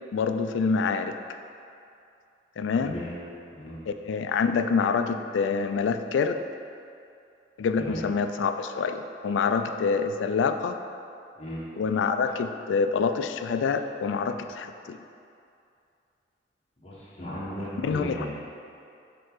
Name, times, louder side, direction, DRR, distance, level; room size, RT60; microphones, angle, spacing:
voice 1, 0.1-1.1 2.6-3.0 3.9-6.4 7.6-10.8 11.8-15.0 17.8-18.3, left 5 dB, 85° left, 8 dB, 0.3 m, -26 dB
voice 2, 2.8-3.2 3.5-3.8 7.8-8.0 11.4-11.6 16.8-18.3, equal, 35° left, -8 dB, 1.3 m, -36 dB
5.2 x 4.6 x 3.9 m, 2.6 s
head